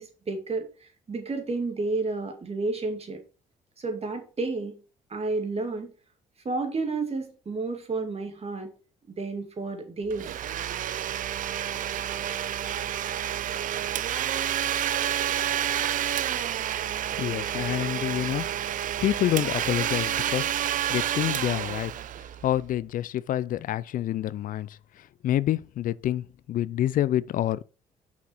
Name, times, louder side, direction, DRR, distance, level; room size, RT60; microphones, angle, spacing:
voice 1, 0.0-3.2 3.8-4.8 5.1-5.9 6.4-8.7 9.1-10.3, right 3 dB, 40° right, 2.2 m, -31 dB
Domestic sounds home sounds, 10.1-22.7, right 11 dB, 60° right, 0.5 m, -29 dB
voice 2, 17.2-18.5 18.8-20.5 20.9-21.9 22.4-27.6, left 12 dB, 60° left, 0.4 m, -28 dB
5.9 x 5.8 x 4.4 m
supercardioid pair, 60°, 16 cm